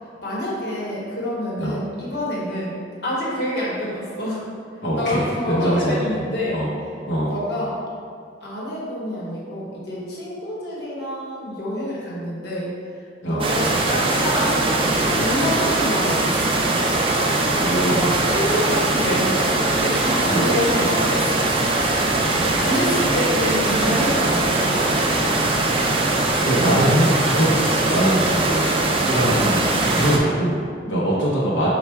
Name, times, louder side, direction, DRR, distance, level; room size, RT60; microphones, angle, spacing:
voice 1, 0.2-4.4 4.9-6.6 7.3-7.8 8.4-12.7 13.3-14.7 15.1-16.7 17.2-21.5 22.6-24.7 30.8-31.0, equal, 60° left, -6 dB, 1.1 m, -27 dB
voice 2, 4.8-6.1 6.5-6.7 7.1-7.3 13.2-13.5 17.6-18.2 20.3-20.5 22.3-22.6 26.4-28.6 29.1-29.6 29.9-31.7, equal, 85° left, -7 dB, 0.8 m, -22 dB
sound 1, 13.4-30.2, right 2 dB, 30° right, 0.4 m, -21 dB
4.5 x 2.3 x 4.3 m, 2.1 s
head